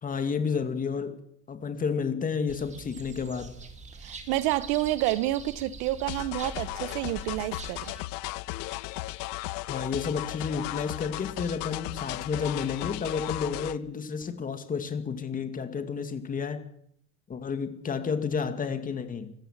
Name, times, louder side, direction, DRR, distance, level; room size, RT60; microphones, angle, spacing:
voice 1, 0.0-1.2 1.5-3.7 9.7-16.6 17.3-19.3, left 6 dB, 25° left, 2.3 m, -31 dB
sound 1, 2.5-8.0, right 4 dB, 20° right, 2.4 m, -44 dB
voice 2, 4.0-7.9, right 16 dB, 80° right, 1.2 m, -29 dB
sound 2, 6.1-13.8, left 20 dB, 80° left, 1.0 m, -36 dB
26.0 x 14.5 x 7.5 m
cardioid pair, 155°, 34 cm